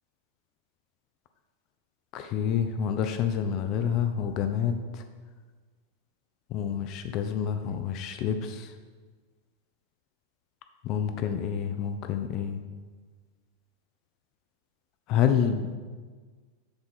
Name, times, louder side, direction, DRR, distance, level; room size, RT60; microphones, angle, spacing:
voice 1, 2.1-5.0 6.5-8.7 10.8-12.6 15.1-15.7, left 8 dB, 40° left, 8 dB, 0.4 m, -28 dB
7.6 x 4.3 x 4.1 m, 1.5 s
figure-of-eight pair, 90°, 0 cm